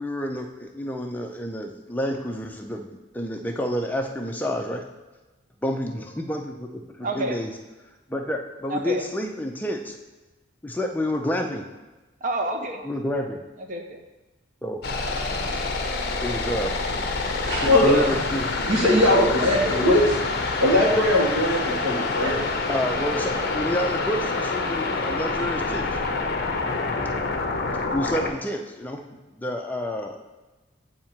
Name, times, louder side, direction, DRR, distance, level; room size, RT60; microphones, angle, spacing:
voice 1, 0.0-2.9 3.1-4.8 5.6-7.5 8.1-10.0 10.6-11.7 12.8-13.4 14.6-14.8 16.2-16.7 17.6-18.5 22.7-26.0 27.9-29.0 29.3-30.2, left 1 dB, 10° left, 2 dB, 0.4 m, -29 dB
voice 2, 7.0-7.4 8.7-9.0 12.2-12.9 13.7-14.0 15.3-15.6 17.8-18.1, right 1 dB, 40° right, 5 dB, 0.6 m, -29 dB
sound 1, 14.8-28.3, left 3 dB, 50° left, 0.6 m, -27 dB
voice 3, 17.4-18.2 18.6-20.2 20.6-22.4, left 1 dB, 80° right, -4 dB, 1.4 m, -20 dB
8.5 x 2.8 x 4.4 m, 1.1 s
head